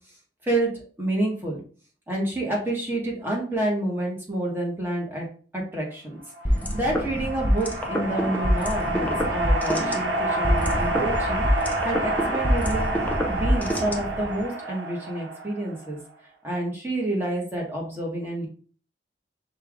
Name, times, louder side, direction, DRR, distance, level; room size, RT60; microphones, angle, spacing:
voice 1, 0.4-1.6 2.1-5.3 5.5-6.2 6.5-12.9 13.3-16.0 16.4-18.5, right 1 dB, 10° right, -2 dB, 1.3 m, -29 dB
sound 1, 6.3-15.9, right 1 dB, 90° right, 0.8 m, -29 dB
sound 2, 6.5-14.4, equal, 10° left, 0.6 m, -26 dB
5.5 x 2.5 x 3.5 m, 0.42 s
head